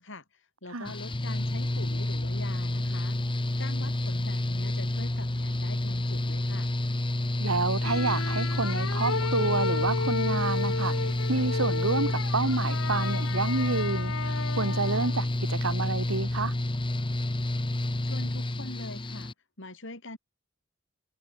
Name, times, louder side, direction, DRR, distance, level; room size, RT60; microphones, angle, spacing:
voice 1, 0.0-3.2 3.5-6.7 18.0-20.2, left 2 dB, 65° left, 7.6 m, -43 dB
Mechanical fan, 0.9-19.3, left 1 dB, 25° left, 1.1 m, -29 dB
voice 2, 7.4-10.9 11.3-16.5, right 3 dB, 85° right, 1.6 m, -29 dB
sound 1, 7.8-15.3, left 4 dB, 85° left, 1.6 m, -34 dB
head